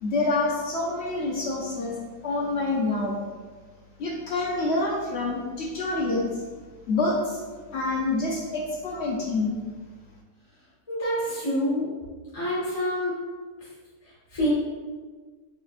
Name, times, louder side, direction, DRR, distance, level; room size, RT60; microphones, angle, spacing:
voice 1, 0.0-2.0 2.2-3.2 4.0-6.4 6.9-7.4 7.7-9.6, left 2 dB, 65° left, -3 dB, 0.6 m, -27 dB
voice 2, 10.9-11.9 12.3-13.1 14.3-14.5, equal, 20° left, -11 dB, 1.2 m, -26 dB
5.1 x 3.8 x 2.5 m, 1.4 s
omnidirectional pair, 1.9 m